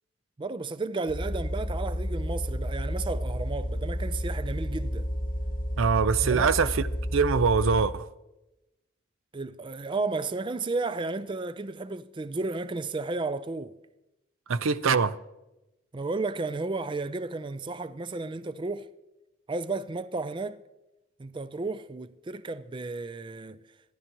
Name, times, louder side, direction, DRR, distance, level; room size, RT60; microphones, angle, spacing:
voice 1, 0.4-5.1 6.2-6.7 9.3-13.8 15.9-18.9 19.5-20.6 21.2-23.6, right 3 dB, 25° right, 0.4 m, -33 dB
sound 1, 1.1-8.0, equal, 45° left, 1.0 m, -31 dB
voice 2, 5.8-6.8 7.1-8.1 14.5-15.2, right 5 dB, 80° right, 0.6 m, -23 dB
25.5 x 11.0 x 3.0 m
head